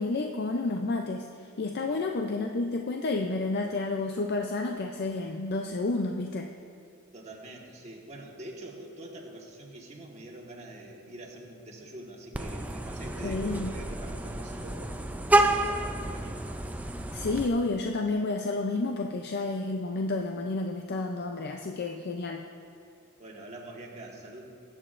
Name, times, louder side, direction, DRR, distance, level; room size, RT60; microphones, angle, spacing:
voice 1, 0.0-6.5 13.2-13.7 17.1-22.4, left 3 dB, 50° left, 3 dB, 0.5 m, -30 dB
voice 2, 7.1-15.0 15.3-16.5 23.2-24.4, right 1 dB, 30° right, -2 dB, 1.4 m, -44 dB
Vehicle horn car horn honking, 12.3-17.5, right 2 dB, 5° right, 0.4 m, -29 dB
20.0 x 8.8 x 2.5 m, 2.4 s
head